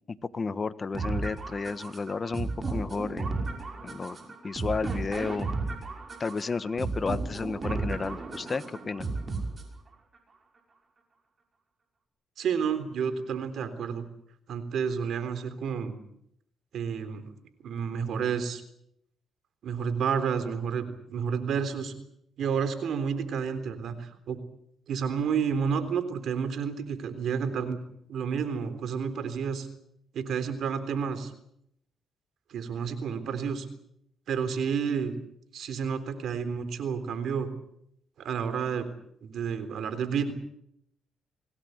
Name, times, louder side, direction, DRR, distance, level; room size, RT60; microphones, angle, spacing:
voice 1, 0.3-3.5 3.8-4.2 4.4-5.5 6.2-9.1, left 4 dB, 35° left, 14 dB, 1.3 m, -32 dB
sound 1, 0.9-9.9, right 3 dB, 35° right, 5.7 m, -34 dB
voice 2, 12.4-14.1 14.5-16.0 16.7-17.3 17.6-18.6 19.6-21.9 22.4-24.4 24.9-27.8 28.1-29.7 30.1-31.3 32.5-33.7 34.3-35.1 35.5-37.5 38.2-38.9 39.2-40.3, right 6 dB, 70° right, 11 dB, 3.6 m, -30 dB
25.5 x 18.0 x 8.1 m, 0.74 s
cardioid pair, 90°, 0 cm